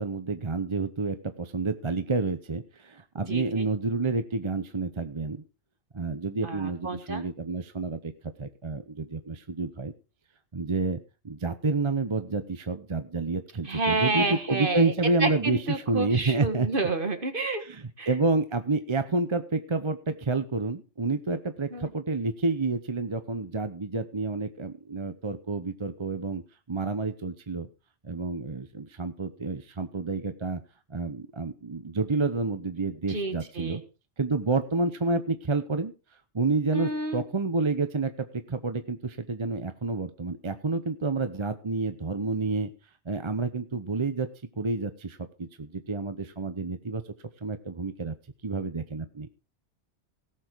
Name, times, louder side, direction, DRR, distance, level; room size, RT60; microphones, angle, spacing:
voice 1, 0.0-5.4 5.9-8.1 8.4-9.9 10.5-11.0 11.2-15.6 15.9-16.7 17.6-26.4 26.7-27.7 28.0-30.6 30.9-33.8 34.2-35.9 36.3-42.7 43.1-44.3 44.6-47.0 47.4-48.1 48.4-49.3, right 3 dB, 30° right, 9 dB, 0.8 m, -29 dB
voice 2, 3.3-3.7 6.4-7.2 13.7-14.9 15.2-17.6 18.0-18.1 21.7-21.9 33.1-33.8 36.7-37.2, right 3 dB, 50° right, 7 dB, 1.9 m, -29 dB
17.5 x 7.1 x 4.6 m, 0.32 s
omnidirectional pair, 1.2 m